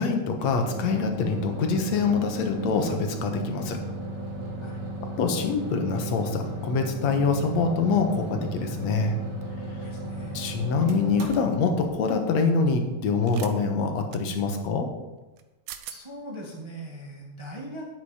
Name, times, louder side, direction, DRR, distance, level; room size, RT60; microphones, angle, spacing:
voice 1, 0.0-3.8 5.2-9.2 10.3-14.9, left 4 dB, 65° left, 5 dB, 2.4 m, -25 dB
sound 1, 0.6-13.2, right 1 dB, 40° right, 2.1 m, -35 dB
voice 2, 9.8-10.4 15.9-17.9, equal, 25° right, -1 dB, 0.6 m, -40 dB
sound 2, 11.3-11.5 13.2-13.5 14.1-14.2 15.4-15.5 15.7-16.0, right 11 dB, 75° right, 2.0 m, -41 dB
11.5 x 8.4 x 4.9 m, 1.1 s
omnidirectional pair, 3.5 m